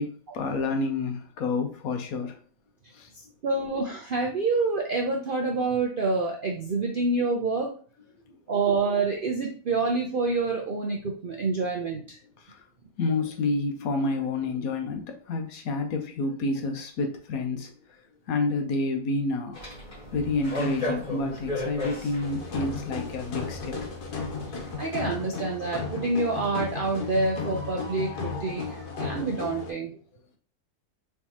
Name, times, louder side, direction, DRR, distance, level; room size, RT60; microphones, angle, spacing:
voice 1, 0.0-2.4 2.9-3.1 12.4-12.6 13.0-18.0 18.3-19.6 20.1-23.8, left 3 dB, 70° left, 5 dB, 1.1 m, -29 dB
voice 2, 3.4-7.7 8.5-12.2 24.5-29.9, right 3 dB, 70° right, 0 dB, 0.5 m, -27 dB
sound 1, 19.5-24.7, left 1 dB, 30° left, 2.1 m, -36 dB
sound 2, 22.2-29.7, left 4 dB, 85° left, 1.4 m, -34 dB
4.3 x 3.4 x 2.9 m, 0.43 s
omnidirectional pair, 1.6 m